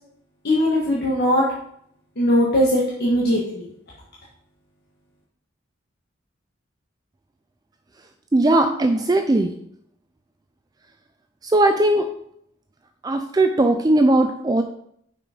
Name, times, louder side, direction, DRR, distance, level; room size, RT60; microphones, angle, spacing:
voice 1, 0.4-1.4 2.2-3.7, equal, 55° left, -5 dB, 1.3 m, -20 dB
voice 2, 8.3-9.5 11.4-12.1 13.0-14.6, right 2 dB, 20° right, 6 dB, 0.4 m, -18 dB
5.8 x 5.0 x 5.0 m, 0.69 s
head